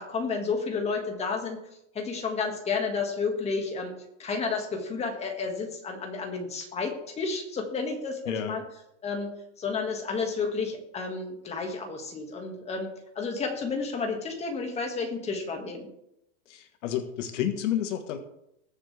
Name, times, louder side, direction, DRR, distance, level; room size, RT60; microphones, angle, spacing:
voice 1, 0.0-1.6 1.9-3.9 4.2-8.6 9.0-12.9 13.2-15.9, left 4 dB, 15° left, 2 dB, 2.1 m, -31 dB
voice 2, 8.3-8.6 16.5-18.2, left 10 dB, 70° left, 7 dB, 1.6 m, -30 dB
20.5 x 7.4 x 3.5 m, 0.80 s
supercardioid pair, 155°, 38 cm